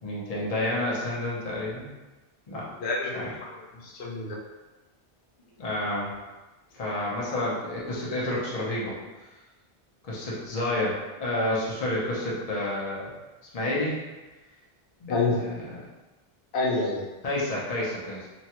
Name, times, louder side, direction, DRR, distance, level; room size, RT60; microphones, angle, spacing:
voice 1, 0.0-1.9 2.5-2.7 3.1-3.3 5.6-6.1 6.7-9.0 10.0-13.2 13.5-14.0 15.0-15.8 17.2-18.3, left 1 dB, 40° left, -6 dB, 0.7 m, -30 dB
voice 2, 2.8-3.6 3.8-4.4 15.1-15.4 16.5-17.0, left 3 dB, 85° left, -3 dB, 0.9 m, -27 dB
3.1 x 2.2 x 2.8 m, 1.1 s
omnidirectional pair, 1.0 m